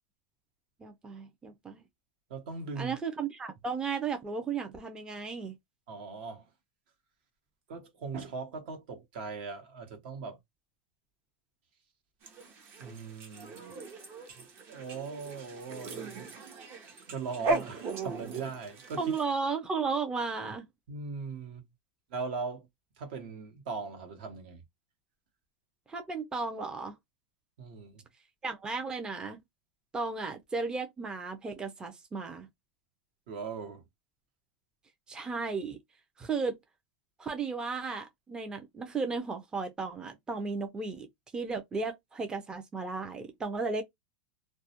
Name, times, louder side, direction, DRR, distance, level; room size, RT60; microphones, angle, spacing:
voice 1, 0.8-1.8 2.8-5.6 19.0-20.7 25.9-26.9 28.4-29.4 29.9-32.5 35.1-35.8 36.2-36.6 37.2-41.1 41.3-43.8, right 4 dB, 15° right, 0.4 m, -34 dB
voice 2, 2.3-2.9 5.9-6.5 7.7-10.4 12.8-13.6 14.3-16.3 17.0-19.2 20.9-21.6 22.1-22.7 23.0-24.6 27.6-28.0 33.3-33.9, right 4 dB, 65° right, 1.0 m, -39 dB
sound 1, 12.2-19.2, right 3 dB, 45° right, 0.7 m, -38 dB
2.3 x 2.1 x 2.8 m
supercardioid pair, 135°, 6 cm